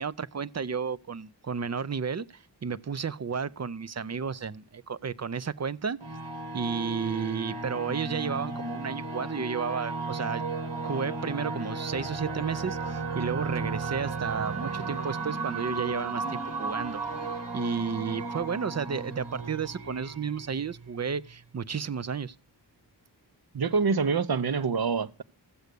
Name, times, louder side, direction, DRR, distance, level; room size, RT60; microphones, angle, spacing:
voice 1, 0.0-6.0 6.5-10.4 10.8-17.0 17.5-22.3, right 6 dB, 40° right, 0.6 m, -32 dB
sound 1, 6.0-21.3, right 3 dB, 75° right, 2.2 m, -35 dB
voice 2, 23.5-25.2, right 5 dB, 60° right, 0.9 m, -26 dB
14.0 x 8.0 x 6.6 m
wide cardioid pair, 70°, 42 cm